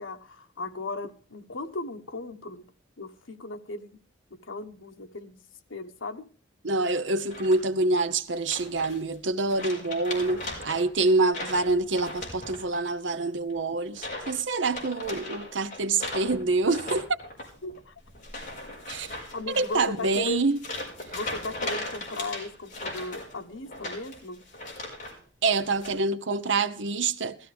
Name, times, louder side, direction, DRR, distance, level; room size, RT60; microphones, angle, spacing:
voice 1, 0.0-2.6 3.0-4.0 4.4-5.4 5.7-6.2 17.6-17.9 19.3-20.5 21.1-24.4, left 2 dB, 90° left, 1.3 m, -36 dB
voice 2, 6.6-17.2 18.9-19.1 19.5-20.6 25.4-27.4, right 3 dB, 70° right, 0.9 m, -26 dB
sound 1, 7.3-7.8 8.5-9.2 9.5-12.9 13.2-13.5 13.9-14.4 14.7-25.2 25.5-25.9, left 2 dB, 40° left, 4.8 m, -38 dB
16.5 x 14.5 x 3.4 m
head